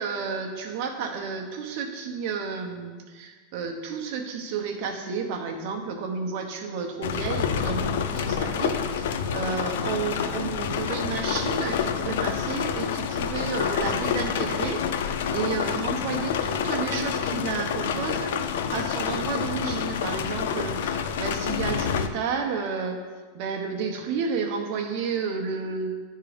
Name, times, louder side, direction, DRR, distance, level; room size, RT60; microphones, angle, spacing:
voice 1, 0.0-18.4 18.7-23.0 23.3-26.0, right 5 dB, 50° right, 3 dB, 1.0 m, -31 dB
sound 1, 7.0-22.1, left 7 dB, 80° left, 0.5 m, -28 dB
9.6 x 3.7 x 5.1 m, 1.5 s
supercardioid pair, 165°, 0 cm